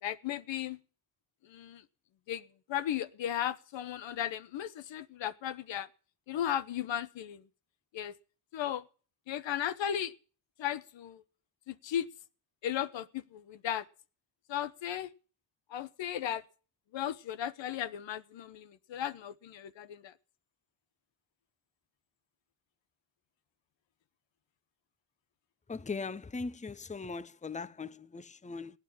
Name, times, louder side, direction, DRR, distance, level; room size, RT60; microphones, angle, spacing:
voice 1, 0.0-0.8 1.4-1.8 2.3-5.9 6.3-7.4 7.9-8.1 8.5-8.8 9.3-10.1 10.6-11.2 11.7-12.1 12.6-13.9 14.5-15.1 15.7-16.4 16.9-20.1, left 10 dB, 70° left, 1.1 m, -36 dB
voice 2, 25.7-28.7, left 4 dB, 15° left, 0.8 m, -39 dB
17.5 x 9.9 x 7.3 m
supercardioid pair, 45°, 47 cm